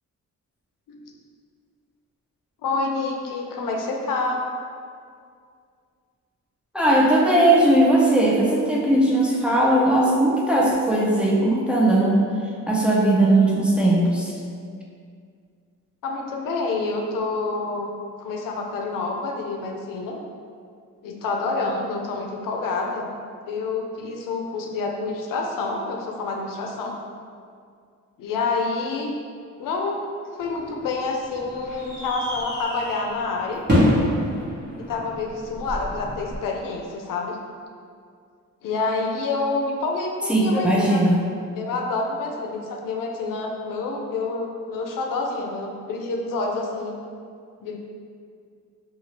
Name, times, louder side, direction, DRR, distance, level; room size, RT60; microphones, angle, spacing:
voice 1, 2.6-4.4 16.0-17.9 18.2-20.2 21.0-23.1 23.5-27.0 28.2-29.1 29.6-33.6 34.8-37.4 38.6-41.0 41.6-46.9 47.6-47.8, left 3 dB, 85° left, 1 dB, 0.5 m, -28 dB
voice 2, 6.7-12.2 12.7-14.3 40.3-41.2, right 1 dB, 5° right, -4 dB, 0.4 m, -18 dB
sound 1, 30.4-36.4, equal, 35° right, 1.1 m, -27 dB
2.8 x 2.4 x 2.8 m, 2.2 s
cardioid pair, 85°, 32 cm